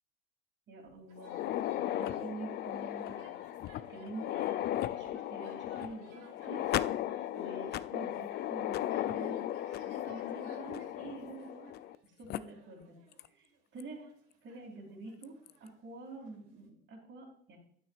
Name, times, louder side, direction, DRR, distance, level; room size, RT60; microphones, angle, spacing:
voice 1, 0.7-3.6 3.9-6.7 7.3-9.5 9.8-11.7 12.0-13.0 13.3-14.1 14.4-15.3 15.6-17.6, right 2 dB, 35° right, -5 dB, 2.5 m, -47 dB
sound 1, 1.1-16.7, right 5 dB, 65° right, 2.3 m, -63 dB
sound 2, 1.2-12.0 12.3-12.4 13.2-13.3 13.8-13.9 15.2-15.5, left 13 dB, 35° left, 0.4 m, -36 dB
9.6 x 8.6 x 2.4 m, 0.65 s
hypercardioid pair, 85°, 32 cm